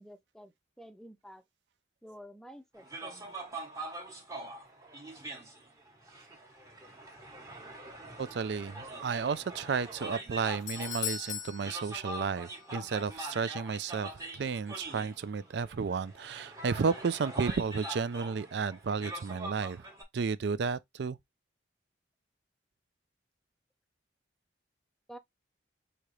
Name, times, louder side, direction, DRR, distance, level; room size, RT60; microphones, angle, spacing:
voice 1, 0.0-1.4 2.0-3.4 25.1-25.2, equal, 5° left, 0.4 m, -50 dB
sound 1, 2.8-20.0, right 2 dB, 15° right, 1.0 m, -44 dB
voice 2, 8.2-19.8 20.1-21.2, right 5 dB, 65° right, 0.4 m, -32 dB
Doorbell, 10.2-12.7 13.0-13.1 13.8-13.9, left 9 dB, 40° left, 0.7 m, -39 dB
5.0 x 2.9 x 3.1 m
head